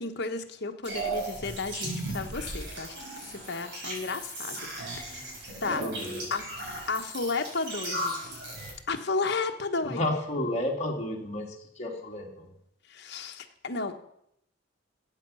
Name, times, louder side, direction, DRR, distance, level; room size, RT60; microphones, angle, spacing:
voice 1, 0.0-2.9 3.3-4.7 4.9-5.3 5.6-5.9 6.3-6.6 6.9-8.2 8.9-10.1 12.9-14.0, left 3 dB, 60° left, 5 dB, 1.2 m, -33 dB
sound 1, 0.8-8.7, right 1 dB, 65° right, 5.7 m, -36 dB
voice 2, 5.8-6.2 9.8-12.5, left 1 dB, 35° left, -1 dB, 2.2 m, -32 dB
14.5 x 8.4 x 5.6 m, 0.74 s
head